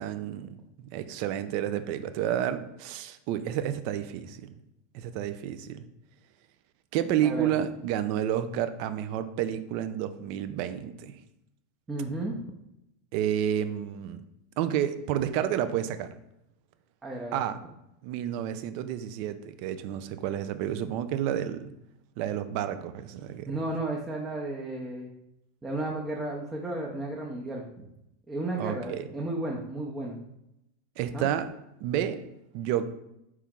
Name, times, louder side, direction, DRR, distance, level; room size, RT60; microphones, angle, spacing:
voice 1, 0.0-4.4 4.9-5.8 6.9-11.2 13.1-14.2 14.6-16.1 17.3-17.6 18.0-21.7 22.2-23.5 28.6-29.1 31.0-31.5 31.8-32.2 32.5-32.9, right 10 dB, 55° right, 11 dB, 0.4 m, -30 dB
voice 2, 11.9-12.4 17.0-17.4 23.5-25.1 25.6-27.9 28.3-30.2 31.1-31.3, right 2 dB, 15° right, -2 dB, 0.7 m, -33 dB
4.5 x 3.0 x 3.5 m, 0.84 s
hypercardioid pair, 90°, 0 cm